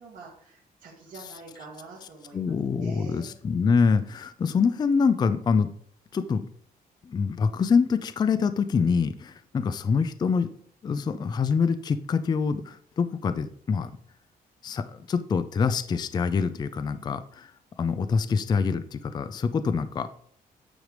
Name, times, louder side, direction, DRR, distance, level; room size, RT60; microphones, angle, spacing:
voice 1, 0.0-3.3, right 3 dB, 55° right, -6 dB, 1.8 m, -46 dB
voice 2, 2.3-5.7 6.1-6.4 7.0-10.5 10.8-13.9 14.6-17.5 17.8-20.3, left 5 dB, 25° left, 11 dB, 0.4 m, -25 dB
9.4 x 3.3 x 5.1 m, 0.64 s
cardioid pair, 135°, 16 cm